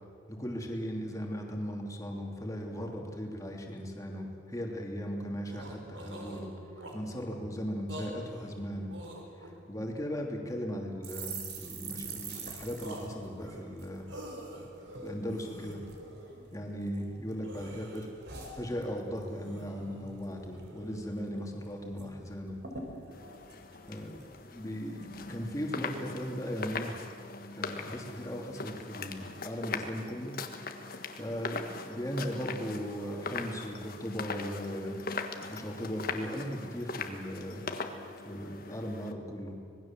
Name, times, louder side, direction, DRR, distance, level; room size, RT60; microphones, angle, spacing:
voice 1, 0.3-6.5 6.9-8.9 9.4-14.1 15.0-15.8 16.5-18.1 18.6-22.6 23.9-24.2 24.5-26.9 27.5-30.3 31.2-35.0 35.5-37.6 38.3-39.6, equal, 15° left, 1 dB, 2.9 m, -37 dB
sound 1, 3.5-3.6 3.8-3.9 4.4-4.7 5.1-5.2 5.4-7.2 7.8-9.9 10.5-11.3 11.8-12.4 12.8-16.4 16.8-16.9 17.2-21.3, right 1 dB, 80° right, 4.2 m, -47 dB
sound 2, 11.0-14.6 14.9-15.1 15.4-16.0 16.5-17.3 17.6-19.3 19.6-19.8 20.1-20.7 21.0-21.1 21.4-22.1 22.3-22.4 22.6-24.5 25.0-25.3, right 4 dB, 60° right, 4.0 m, -45 dB
sound 3, 23.1-39.1, left 4 dB, 50° left, 1.5 m, -40 dB
25.5 x 20.0 x 7.5 m, 2.4 s
head